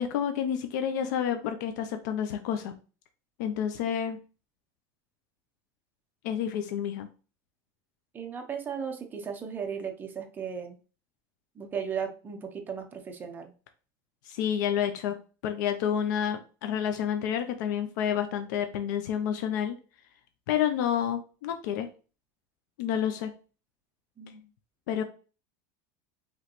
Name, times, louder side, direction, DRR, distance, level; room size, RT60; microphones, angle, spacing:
voice 1, 0.0-2.7 3.4-4.2 6.2-7.1 14.2-15.2 15.4-19.8 20.5-21.9 22.8-23.3 24.9-25.0, left 9 dB, 85° left, 7 dB, 0.6 m, -29 dB
voice 2, 8.1-10.8 11.6-13.5 24.2-24.4, right 7 dB, 20° right, 4 dB, 0.7 m, -36 dB
4.9 x 3.1 x 3.0 m, 0.36 s
supercardioid pair, 150°, 10 cm